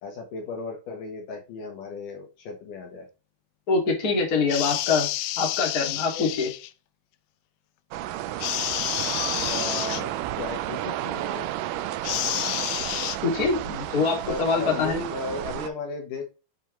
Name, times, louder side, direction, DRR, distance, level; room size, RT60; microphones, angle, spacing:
voice 1, 0.0-3.1 5.9-6.3 9.5-11.5 14.2-16.2, left 3 dB, 65° left, 2 dB, 2.7 m, -35 dB
voice 2, 3.7-5.1 5.4-6.5 13.2-15.0, left 4 dB, 30° left, 0 dB, 2.3 m, -24 dB
sound 1, 4.5-6.7 8.4-10.0 12.0-13.2, left 16 dB, 85° left, 2.5 m, -29 dB
sound 2, 7.9-15.7, right 13 dB, 80° right, 1.9 m, -32 dB
8.2 x 5.5 x 3.1 m, 0.30 s
omnidirectional pair, 4.3 m